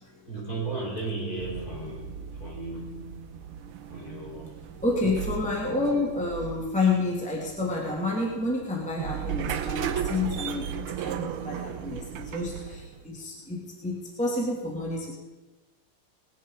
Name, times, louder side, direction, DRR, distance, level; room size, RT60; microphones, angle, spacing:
voice 1, 0.0-3.3 3.8-4.6, right 3 dB, 45° left, -4 dB, 5.7 m, -36 dB
sound 1, 1.4-13.1, right 8 dB, 85° right, 1.7 m, -36 dB
voice 2, 4.8-15.2, left 2 dB, 5° left, -3 dB, 2.3 m, -29 dB
20.0 x 10.5 x 5.5 m, 1.2 s
omnidirectional pair, 2.3 m